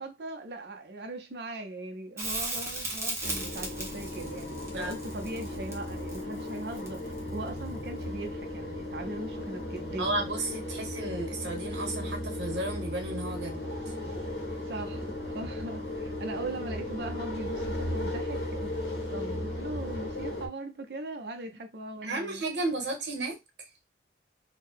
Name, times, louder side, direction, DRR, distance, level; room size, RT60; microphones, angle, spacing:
voice 1, 0.0-7.0 7.3-10.2 14.7-22.4, right 2 dB, 70° right, 0.6 m, -40 dB
Crackle, 2.2-7.3 10.0-10.1, right 2 dB, 15° right, 0.7 m, -36 dB
sound 1, 3.2-20.5, left 1 dB, 65° left, 1.0 m, -36 dB
voice 2, 10.0-13.9 22.0-23.4, right 2 dB, 85° right, 1.0 m, -33 dB
2.7 x 2.2 x 3.5 m
head